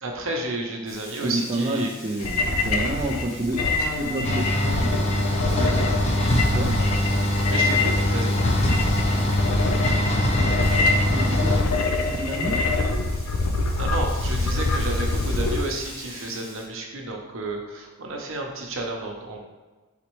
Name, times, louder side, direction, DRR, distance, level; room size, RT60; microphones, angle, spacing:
voice 1, 0.0-1.9 5.6-5.9 7.5-8.3 13.8-19.4, right 2 dB, 65° right, 1 dB, 0.8 m, -31 dB
Frying (food), 0.9-16.6, left 1 dB, 45° left, 1.4 m, -43 dB
voice 2, 1.2-5.1 6.5-6.8 11.1-11.5 12.1-12.6, right 1 dB, 30° right, -3 dB, 0.3 m, -29 dB
sound 1, 2.2-15.6, left 3 dB, 90° left, 0.5 m, -25 dB
sound 2, 4.2-11.6, equal, 30° left, 0.5 m, -23 dB
4.2 x 4.0 x 3.0 m, 1.3 s
head